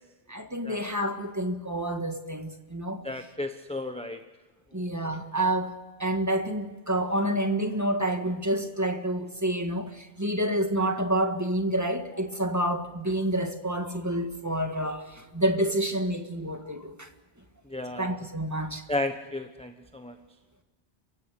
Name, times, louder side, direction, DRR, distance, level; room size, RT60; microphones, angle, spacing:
voice 1, 0.3-3.0 4.7-17.1 18.0-18.8, right 1 dB, 15° right, 1.7 m, -28 dB
voice 2, 3.0-4.2 4.8-4.9 17.7-18.2 18.9-20.1, left 2 dB, 5° left, 0.9 m, -33 dB
29.0 x 16.0 x 8.4 m
omnidirectional pair, 1.1 m